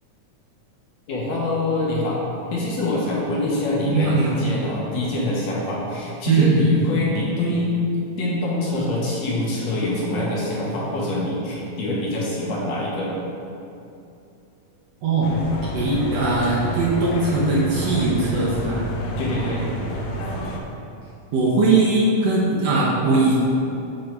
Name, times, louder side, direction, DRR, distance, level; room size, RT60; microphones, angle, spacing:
voice 1, 1.1-2.2 2.5-7.8 8.2-13.1 19.2-19.7, left 1 dB, 65° left, -5 dB, 2.1 m, -25 dB
voice 2, 3.9-4.3 6.3-6.7 15.0-15.5 15.7-18.8 21.3-23.3, right 3 dB, 70° right, -5 dB, 1.7 m, -20 dB
sound 1, 15.2-20.6, equal, 85° left, 1.4 m, -30 dB
7.6 x 3.8 x 4.5 m, 2.7 s
omnidirectional pair, 3.5 m